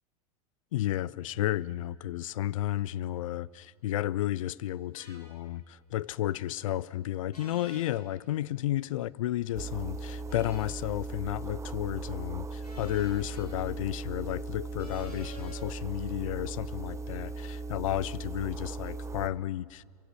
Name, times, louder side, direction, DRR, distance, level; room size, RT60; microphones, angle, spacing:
voice 1, 0.7-19.8, left 13 dB, 60° left, 0.6 m, -32 dB
sound 1, 4.9-5.2 7.3-7.9 10.3-10.7 12.6-13.5 14.8-15.6, equal, 85° left, 6.2 m, -50 dB
sound 2, 9.5-19.3, right 3 dB, 15° right, 1.1 m, -38 dB
27.5 x 24.0 x 6.3 m
figure-of-eight pair, 80°, 19 cm